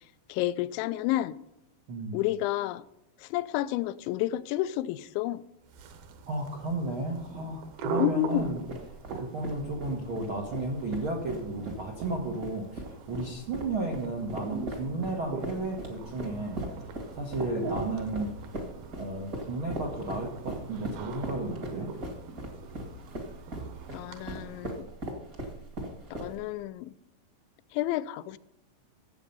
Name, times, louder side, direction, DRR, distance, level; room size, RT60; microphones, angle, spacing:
voice 1, 0.3-1.4 2.1-2.8 3.2-5.4 8.0-8.6 17.6-17.8 23.9-24.9 26.1-26.9 27.7-28.4, left 14 dB, 85° left, 2.9 m, -30 dB
sound 1, 5.6-25.0, right 4 dB, 65° right, 2.8 m, -42 dB
voice 2, 6.3-8.6 9.1-12.8 13.1-16.9 17.1-18.4 18.9-21.9, right 2 dB, 85° right, 1.1 m, -33 dB
sound 2, 8.3-26.6, right 1 dB, 40° right, 1.2 m, -39 dB
16.0 x 7.8 x 5.4 m
omnidirectional pair, 5.2 m